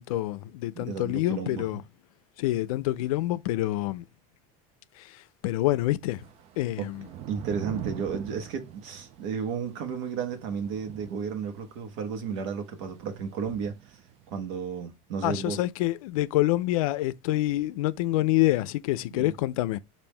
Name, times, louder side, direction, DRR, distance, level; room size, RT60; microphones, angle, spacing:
voice 1, 0.0-1.8 2.4-4.0 5.0-5.2 5.4-6.2 6.6-7.0 15.2-19.8, left 16 dB, 80° left, 0.5 m, -27 dB
voice 2, 0.7-1.7 6.8-6.9 7.3-14.0 14.3-15.6 19.1-19.3, right 6 dB, 60° right, 1.1 m, -33 dB
Thunder / Rain, 6.1-14.5, right 12 dB, 35° right, 0.5 m, -44 dB
5.3 x 2.6 x 3.3 m
supercardioid pair, 150°, 18 cm